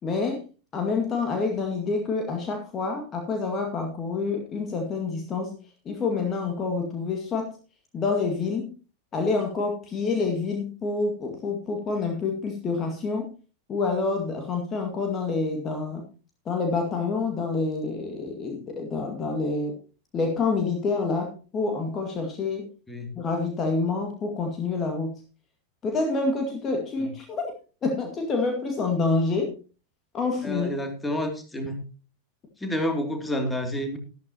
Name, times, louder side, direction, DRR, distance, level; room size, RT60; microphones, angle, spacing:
voice 1, 0.0-0.4 0.7-5.6 5.9-7.5 7.9-8.7 9.1-13.3 13.7-16.0 16.5-19.7 20.1-22.7 23.2-25.1 25.8-27.4 27.8-29.5 30.1-30.7, left 4 dB, 25° left, 3 dB, 2.1 m, -27 dB
voice 2, 30.4-31.8 32.6-34.0, left 1 dB, 10° left, 4 dB, 2.7 m, -29 dB
13.0 x 12.5 x 2.9 m, 0.35 s
figure-of-eight pair, 90°, 0 cm